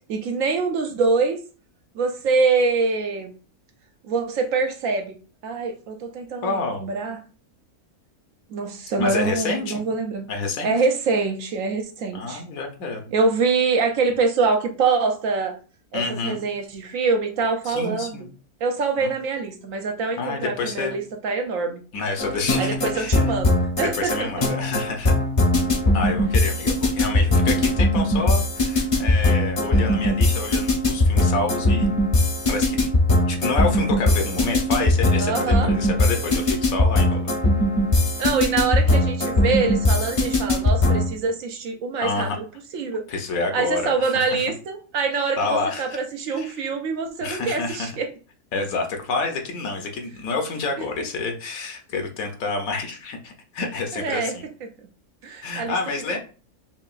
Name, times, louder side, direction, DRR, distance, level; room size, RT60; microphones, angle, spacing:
voice 1, 0.1-1.4 1.9-3.3 4.0-5.2 5.4-7.2 8.5-10.3 10.6-12.4 13.1-15.5 15.9-18.3 18.6-21.8 22.6-23.5 23.8-24.3 35.2-35.7 38.2-42.4 42.7-43.0 43.5-48.1 53.9-54.3 55.2-55.8, right 4 dB, 70° right, 4 dB, 1.0 m, -24 dB
voice 2, 6.4-6.9 9.0-9.9 10.3-10.7 12.1-13.0 15.9-16.4 17.7-18.3 19.0-19.2 20.2-21.0 21.9-23.2 23.8-25.1 25.9-32.0 32.5-32.9 33.3-37.4 42.0-42.4 43.1-44.5 45.1-46.0 46.3-46.5 47.2-47.9 48.5-54.4 55.4-56.2, left 3 dB, 70° left, 4 dB, 1.2 m, -28 dB
sound 1, 22.2-41.1, left 1 dB, 30° left, 0.6 m, -20 dB
5.5 x 2.2 x 2.4 m, 0.36 s
omnidirectional pair, 1.6 m